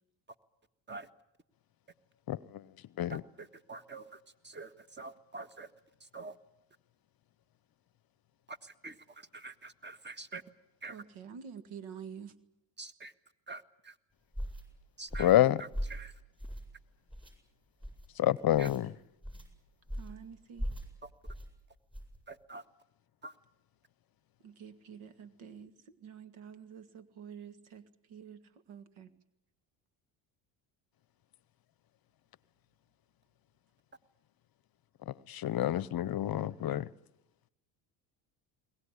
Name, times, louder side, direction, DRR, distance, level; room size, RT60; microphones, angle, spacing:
voice 1, 3.1-5.7 6.0-6.3 8.5-10.4 10.8-11.0 12.8-13.1 13.5-13.9 15.0-15.3 15.6-16.1 18.6-18.7 21.0-21.1 22.3-22.6 23.2-23.3, right 3 dB, 20° right, 1.6 m, -46 dB
voice 2, 10.9-12.3 20.0-20.7 24.4-28.4 28.7-29.1, right 7 dB, 70° right, 2.0 m, -48 dB
sound 1, 14.3-14.6 15.1-15.4 15.7-16.0 16.4-16.8 17.1-17.3 17.8-18.1 18.5-18.8 19.2-19.5 19.9-20.2 20.6-20.9 21.3-21.5 21.9-22.2, equal, ahead, 7.8 m, -39 dB
voice 3, 15.2-15.6 18.2-18.9 35.3-36.9, left 12 dB, 45° left, 0.8 m, -27 dB
22.0 x 19.0 x 10.0 m
supercardioid pair, 75°, 50 cm